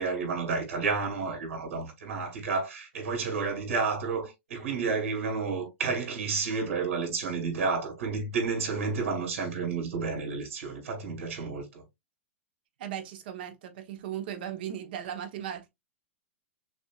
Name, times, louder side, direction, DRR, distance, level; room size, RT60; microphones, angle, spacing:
voice 1, 0.0-11.8, right 4 dB, 80° right, 2.6 m, -31 dB
voice 2, 12.8-15.7, right 10 dB, 50° right, 1.0 m, -37 dB
6.2 x 2.8 x 2.3 m
supercardioid pair, 170°, 7 cm